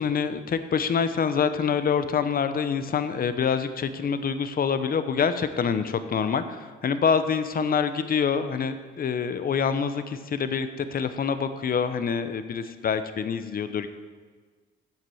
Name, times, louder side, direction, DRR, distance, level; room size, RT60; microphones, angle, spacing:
voice 1, 0.0-13.9, left 6 dB, 45° left, 11 dB, 0.8 m, -26 dB
8.5 x 7.3 x 7.8 m, 1.4 s
cardioid pair, 90°, 20 cm